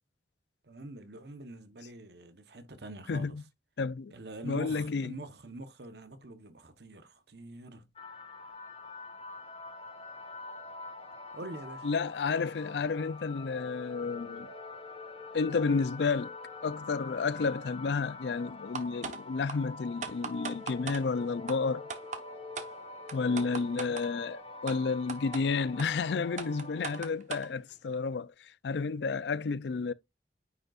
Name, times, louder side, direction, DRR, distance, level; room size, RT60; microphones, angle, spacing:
voice 1, 0.6-3.4 4.1-7.9 11.3-11.9, right 1 dB, 65° right, 1.0 m, -45 dB
voice 2, 3.1-3.4 3.8-4.1 4.4-5.1 11.8-14.5 15.3-16.3 16.6-21.9 23.1-29.9, left 4 dB, 70° left, 0.4 m, -31 dB
sound 1, 8.0-27.1, left 3 dB, 35° left, 1.4 m, -45 dB
sound 2, 18.8-19.2 19.5-19.6 20.0-21.0 21.5-21.6 21.9-22.2 22.6-22.7 23.1-24.1 24.7-24.8 25.1-25.4 25.8-25.9 26.4-27.5, right 5 dB, 40° right, 1.0 m, -38 dB
9.5 x 5.3 x 2.4 m
head